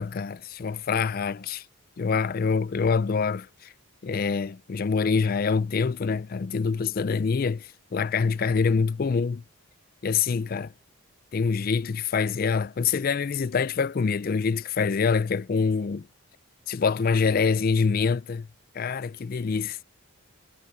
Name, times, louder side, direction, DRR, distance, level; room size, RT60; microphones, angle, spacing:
voice 1, 0.0-1.6 2.0-3.7 4.0-9.4 10.0-10.7 11.3-16.1 16.7-18.5 18.7-19.8, left 5 dB, 40° left, 0.3 m, -25 dB
head